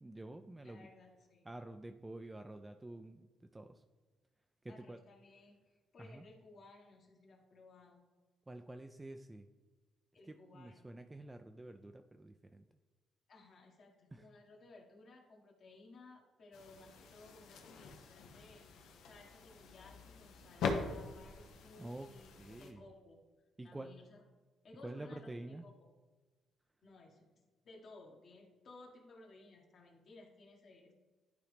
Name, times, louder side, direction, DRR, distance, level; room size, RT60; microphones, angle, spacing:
voice 1, 0.0-0.9 1.4-3.3 3.5-3.8 4.6-5.0 6.0-6.3 8.5-9.5 10.3-12.7 14.1-14.3 21.8-22.1 22.4-22.9 23.6-23.9 24.8-25.6, right 2 dB, 15° right, 7 dB, 0.4 m, -48 dB
voice 2, 0.6-1.5 4.7-8.0 10.1-10.9 13.3-22.3 22.6-23.2 23.6-24.2 24.6-25.7 26.8-30.9, left 3 dB, 60° left, -1 dB, 1.6 m, -59 dB
sound 1, 16.5-22.7, left 4 dB, 85° left, 0.9 m, -43 dB
11.5 x 3.8 x 3.4 m, 1.3 s
cardioid pair, 90°, 0 cm